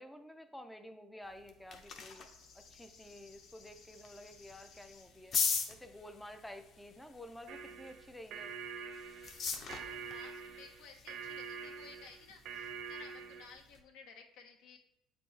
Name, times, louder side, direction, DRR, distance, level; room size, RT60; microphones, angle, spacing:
voice 1, 0.0-2.3 2.5-5.3 5.7-8.5, left 1 dB, 5° left, 8 dB, 0.4 m, -51 dB
sound 1, 1.2-13.8, left 5 dB, 35° left, 0.7 m, -43 dB
sound 2, 1.9-7.3, left 5 dB, 55° left, 1.1 m, -62 dB
sound 3, 7.5-13.6, right 6 dB, 50° right, 0.6 m, -45 dB
voice 2, 9.8-14.8, left 5 dB, 90° left, 3 dB, 1.1 m, -56 dB
8.2 x 4.4 x 3.2 m, 0.91 s
cardioid pair, 170°, 0 cm